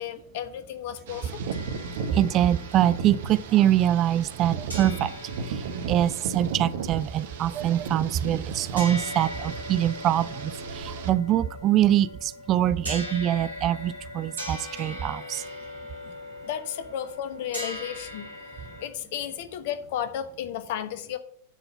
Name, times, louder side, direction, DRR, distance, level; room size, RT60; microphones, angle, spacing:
voice 1, 0.0-1.4 16.4-18.3 18.8-21.2, left 10 dB, 50° left, 10 dB, 1.0 m, -33 dB
sound 1, 1.1-11.1, right 5 dB, 55° right, 1.1 m, -35 dB
sound 2, 1.5-4.4 4.7-18.9, left 1 dB, 85° right, 2.9 m, -40 dB
voice 2, 2.1-5.1 5.4-15.4, right 11 dB, 35° right, 16 dB, 0.4 m, -24 dB
10.0 x 4.0 x 7.0 m, 0.69 s
figure-of-eight pair, 90°, 0 cm